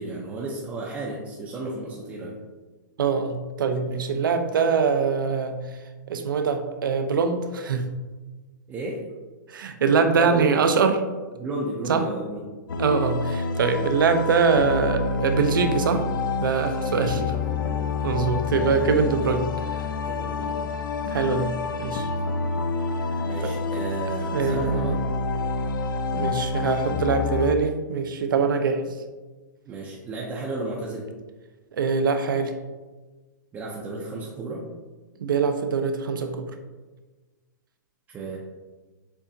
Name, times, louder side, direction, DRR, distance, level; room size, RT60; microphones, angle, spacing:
voice 1, 0.0-2.4 8.7-9.1 10.1-10.7 11.4-12.5 16.9-17.8 20.0-20.7 22.3-22.4 23.2-25.0 28.7-28.8 29.7-31.1 33.5-34.7 38.1-38.4, right 2 dB, 15° right, -4 dB, 0.5 m, -33 dB
voice 2, 3.0-5.6 6.1-7.8 9.5-10.9 11.9-12.1 12.8-16.0 16.4-17.2 18.0-19.4 19.7-19.8 21.0-21.5 21.8-22.1 24.3-25.0 26.1-28.8 31.8-32.5 35.2-36.5, right 5 dB, 85° right, 7 dB, 0.6 m, -23 dB
sound 1, 12.7-27.5, left 4 dB, 85° left, 0.5 m, -28 dB
6.8 x 2.7 x 2.6 m, 1.3 s
hypercardioid pair, 155°, 11 cm